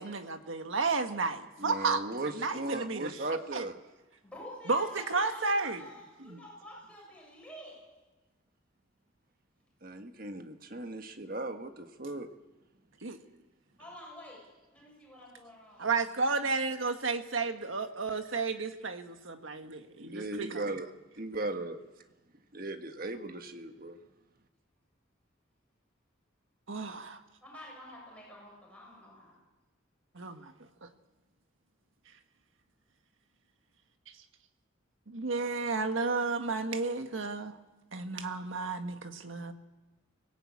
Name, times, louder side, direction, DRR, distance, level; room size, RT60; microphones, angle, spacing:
voice 1, 0.0-2.0 2.3-3.2 3.5-3.6 4.7-5.8 6.2-6.4 13.0-13.2 15.8-20.7 26.7-27.2 30.1-30.5 30.8-30.9 35.1-37.6 37.9-39.5, right 4 dB, 80° right, 7 dB, 1.6 m, -32 dB
voice 2, 1.6-3.7 9.8-12.3 19.6-19.8 20.0-20.9 21.2-21.8 22.5-24.0, right 2 dB, 45° right, 7 dB, 1.5 m, -37 dB
voice 3, 4.2-7.8 13.8-14.5 14.7-15.9 27.4-29.4, left 1 dB, 5° left, -3 dB, 7.6 m, -48 dB
24.5 x 17.5 x 8.6 m, 1.1 s
head